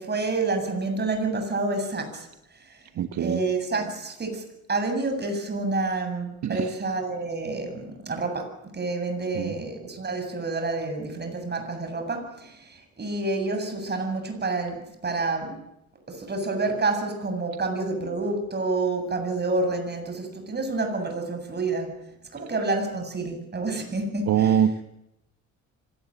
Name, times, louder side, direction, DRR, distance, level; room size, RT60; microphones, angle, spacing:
voice 1, 0.0-2.3 2.6-2.8 3.2-15.6 16.1-22.0 22.3-24.6, right 3 dB, 35° right, 6 dB, 7.9 m, -28 dB
voice 2, 3.0-3.4 6.4-6.7 9.3-9.5 24.3-24.8, right 9 dB, 65° right, 8 dB, 1.4 m, -23 dB
25.5 x 18.5 x 9.2 m, 0.83 s
cardioid pair, 90°, 30 cm